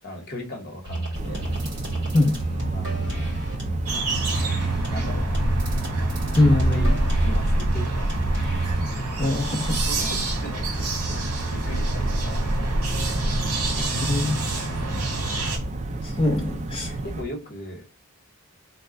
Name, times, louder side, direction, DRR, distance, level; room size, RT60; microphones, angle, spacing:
voice 1, 0.0-1.4 2.7-3.3 4.2-4.6 4.9-5.4 6.3-8.2 9.0-9.1 9.8-11.2 11.5-12.5 12.7-13.5 14.8-15.1 17.0-17.9, equal, 45° left, 3 dB, 1.1 m, -37 dB
sound 1, 0.8-8.9, right 2 dB, 55° right, 2.1 m, -29 dB
sound 2, 1.1-17.2, right 1 dB, 30° right, 0.4 m, -28 dB
sound 3, 3.9-15.6, right 2 dB, 85° right, 1.1 m, -30 dB
voice 2, 6.4-7.0 9.2-9.9 14.0-14.4 16.0-17.0, left 2 dB, 25° left, -1 dB, 0.5 m, -22 dB
3.3 x 2.3 x 3.7 m, 0.30 s
head